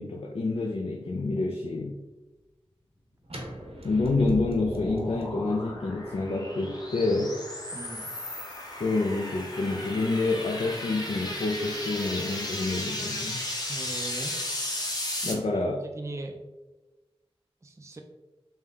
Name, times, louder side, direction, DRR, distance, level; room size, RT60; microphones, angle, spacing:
voice 1, 0.0-2.0 3.8-7.4 8.7-13.4 15.2-15.8, left 3 dB, 70° left, 1 dB, 0.4 m, -28 dB
sound 1, 3.2-9.1, equal, 75° right, 0.9 m, -41 dB
sound 2, 3.8-15.3, left 1 dB, 40° left, 0.9 m, -35 dB
voice 2, 7.7-8.1 13.7-14.4 15.3-15.4 15.9-16.4 17.6-18.0, right 2 dB, 30° right, 3 dB, 0.4 m, -39 dB
3.6 x 2.8 x 3.4 m, 1.1 s
wide cardioid pair, 45°, 10 cm